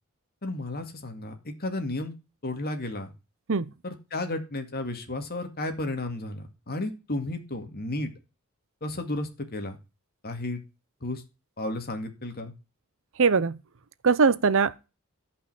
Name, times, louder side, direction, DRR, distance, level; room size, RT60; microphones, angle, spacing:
voice 1, 0.4-2.1 2.4-3.1 3.8-8.1 8.8-9.8 10.2-10.6 11.0-11.2 11.6-12.5, left 2 dB, 45° left, 2.2 m, -33 dB
voice 2, 13.2-13.5 14.0-14.9, right 5 dB, 60° right, 0.7 m, -21 dB
13.5 x 5.6 x 6.2 m
head